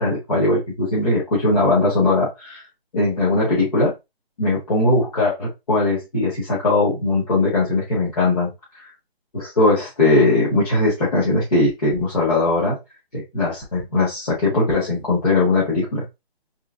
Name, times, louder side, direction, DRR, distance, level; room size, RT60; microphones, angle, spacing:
voice 1, 0.0-2.6 2.9-3.9 4.4-8.5 9.3-12.8 13.1-16.0, left 2 dB, 35° left, -8 dB, 1.8 m, -19 dB
3.8 x 3.5 x 2.6 m, 0.23 s
hypercardioid pair, 175°, 32 cm